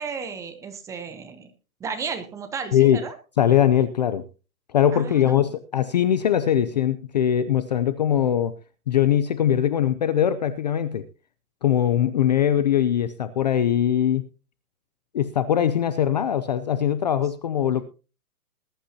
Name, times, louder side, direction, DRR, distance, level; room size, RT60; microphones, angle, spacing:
voice 1, 0.0-1.5 1.8-3.1 4.9-5.4, right 5 dB, 5° right, 9 dB, 0.8 m, -34 dB
voice 2, 3.4-4.2 4.7-8.5 8.9-11.0 11.6-14.2 15.1-17.8, left 10 dB, 30° left, 13 dB, 0.5 m, -21 dB
20.0 x 11.5 x 2.8 m, 0.33 s
hypercardioid pair, 155°, 46 cm